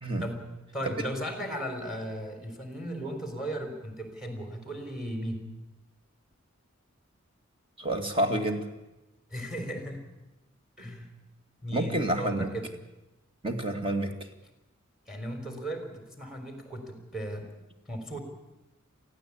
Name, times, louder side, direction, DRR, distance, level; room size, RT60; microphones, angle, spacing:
voice 1, 0.2-5.5 9.3-10.1 10.8-11.1 11.6-12.7 15.1-17.5 17.9-18.2, equal, ahead, 5 dB, 3.9 m, -36 dB
voice 2, 7.8-8.7 11.7-12.5 13.4-14.1, right 1 dB, 25° right, 5 dB, 2.2 m, -28 dB
23.5 x 15.5 x 8.6 m, 0.99 s
head